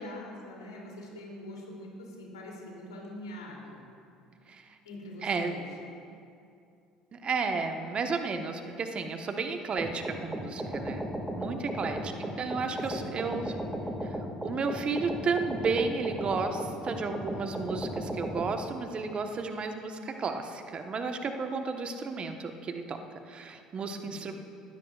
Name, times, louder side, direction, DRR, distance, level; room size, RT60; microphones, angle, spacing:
voice 1, 0.0-3.8 4.8-5.6 11.8-12.2 12.9-13.4 23.9-24.3, left 1 dB, 80° left, -2 dB, 3.1 m, -44 dB
voice 2, 5.2-5.6 7.1-13.5 14.0-14.2 14.4-23.0 23.3-24.3, right 4 dB, 40° right, 5 dB, 1.2 m, -33 dB
sound 1, 9.8-18.5, right 1 dB, 15° right, 2.2 m, -35 dB
20.5 x 16.0 x 2.5 m, 2.5 s
hypercardioid pair, 60°, 3 cm